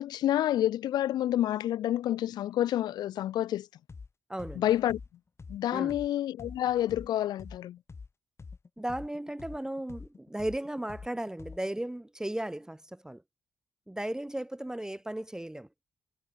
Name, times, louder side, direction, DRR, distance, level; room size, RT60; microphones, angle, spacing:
voice 1, 0.0-3.7 4.5-5.0 5.5-7.8, left 12 dB, 85° left, 1.5 m, -28 dB
sound 1, 3.9-4.1 4.4-8.1 8.4-11.8, left 4 dB, 40° left, 7.3 m, -46 dB
voice 2, 4.3-4.7 5.7-6.0 8.8-13.2 13.9-15.7, right 1 dB, 10° right, 0.9 m, -35 dB
cardioid pair, 65°, 7 cm